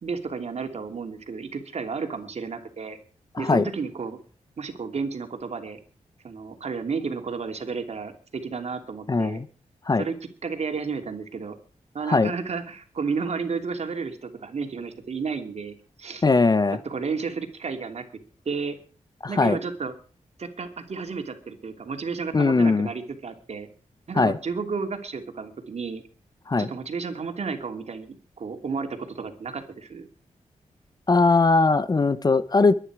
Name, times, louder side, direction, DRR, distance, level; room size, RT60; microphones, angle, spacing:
voice 1, 0.0-3.0 3.4-4.2 4.6-5.8 6.2-9.4 10.0-10.1 10.4-11.6 11.9-16.2 16.8-18.1 18.4-18.8 19.3-19.9 20.4-23.7 24.1-26.0 26.6-30.1, right 5 dB, 55° right, 5 dB, 2.9 m, -32 dB
voice 2, 9.1-9.4 9.9-10.0 12.1-12.3 16.2-16.8 19.2-19.6 22.3-22.9 24.2-24.4 26.5-26.7 31.1-32.7, left 3 dB, 30° left, 15 dB, 0.9 m, -20 dB
22.5 x 10.0 x 4.9 m, 0.40 s
wide cardioid pair, 100°, 13 cm